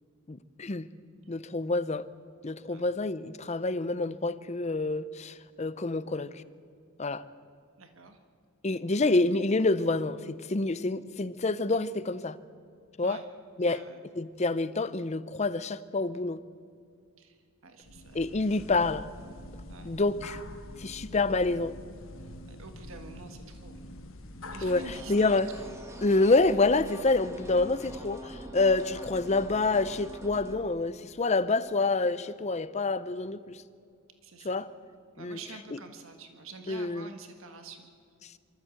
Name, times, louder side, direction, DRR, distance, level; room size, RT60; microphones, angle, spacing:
voice 1, 0.3-0.9 1.3-2.0 2.4-6.4 7.0-7.2 8.6-12.4 13.0-13.2 13.6-13.8 14.1-16.4 18.1-19.1 19.8-20.4 20.8-21.7 24.6-24.8 25.1-25.5 26.0-33.6 34.4-34.7 35.2-35.4 36.7-37.1, left 3 dB, 30° left, 0.6 m, -27 dB
voice 2, 7.8-8.2 13.0-13.3 13.7-14.0 17.2-18.4 19.7-20.0 22.5-23.8 24.5-25.7 34.2-34.6 35.1-37.9, right 3 dB, 75° right, 1.6 m, -47 dB
sound 1, 17.8-25.1, left 1 dB, 75° left, 1.5 m, -45 dB
sound 2, 24.6-30.5, equal, 15° right, 1.6 m, -44 dB
24.0 x 14.0 x 7.9 m
head